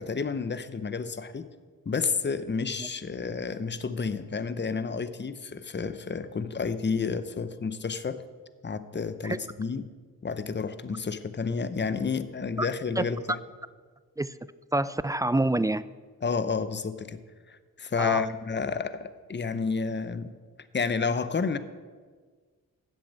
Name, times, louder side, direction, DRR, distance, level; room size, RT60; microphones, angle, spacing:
voice 1, 0.0-1.5 1.9-8.2 8.6-9.9 10.2-13.4 16.2-17.2 17.5-20.3 20.7-21.6, left 5 dB, 30° left, 13 dB, 0.8 m, -30 dB
voice 2, 14.7-15.8 18.0-18.3, right 1 dB, 10° right, 16 dB, 0.3 m, -26 dB
7.7 x 7.2 x 8.3 m, 1.5 s
cardioid pair, 45°, 37 cm